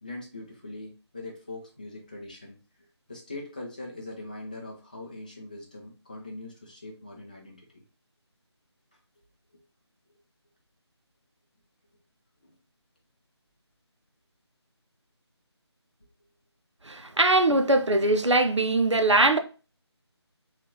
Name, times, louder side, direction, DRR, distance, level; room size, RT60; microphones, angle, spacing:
voice 1, 0.0-2.6 3.1-7.8 12.4-12.5 17.0-17.1, left 2 dB, 20° left, 0.4 m, -41 dB
voice 2, 16.8-19.4, right 2 dB, 90° right, 0.6 m, -21 dB
3.6 x 2.3 x 2.7 m
figure-of-eight pair, 160°, 15 cm